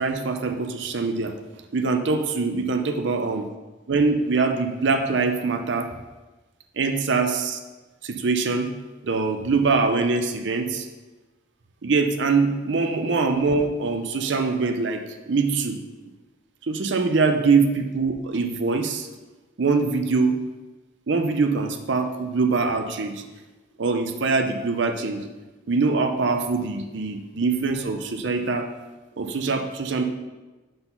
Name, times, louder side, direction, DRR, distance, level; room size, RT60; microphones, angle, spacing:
voice 1, 0.0-1.3 1.7-3.5 3.9-5.9 6.8-7.6 8.0-8.7 9.0-10.9 11.8-15.8 16.7-19.1 19.6-20.3 21.1-23.2 23.8-25.2 25.7-28.7 29.2-30.0, right 4 dB, 65° right, 6 dB, 0.6 m, -23 dB
5.9 x 4.0 x 5.5 m, 1.2 s
head